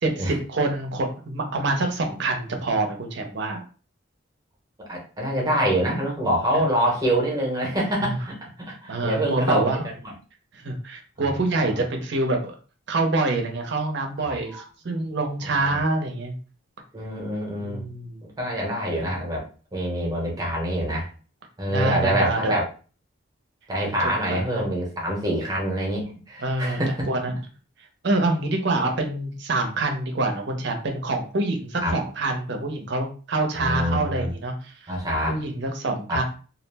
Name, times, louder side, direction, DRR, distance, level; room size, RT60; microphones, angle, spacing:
voice 1, 0.0-3.6 6.5-6.6 8.0-8.2 8.9-9.8 10.5-12.6 12.9-16.3 17.6-18.2 21.7-22.5 23.8-24.6 26.4-26.8 27.1-27.3 28.0-34.9 35.3-36.2, right 2 dB, 60° right, 4 dB, 0.6 m, -26 dB
voice 2, 4.8-10.1 11.2-11.3 11.7-11.8 14.2-14.6 15.4-15.8 16.9-17.9 18.4-19.4 19.7-21.1 21.6-22.6 23.7-27.1 31.8-32.0 33.5-34.3 34.9-35.4 36.1-36.2, equal, 20° right, -2 dB, 0.8 m, -26 dB
2.4 x 2.0 x 3.3 m, 0.38 s
head